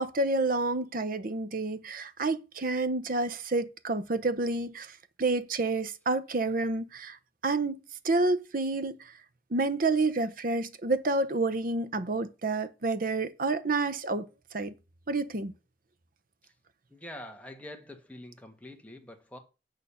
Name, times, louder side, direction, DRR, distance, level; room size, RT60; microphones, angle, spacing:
voice 1, 0.0-4.9 5.2-7.2 7.4-7.8 8.0-9.0 9.5-14.2 14.5-14.7 15.1-15.5, right 3 dB, 50° right, 0.8 m, -29 dB
voice 2, 16.9-19.4, left 1 dB, 10° left, 1.5 m, -45 dB
7.1 x 6.5 x 7.0 m
head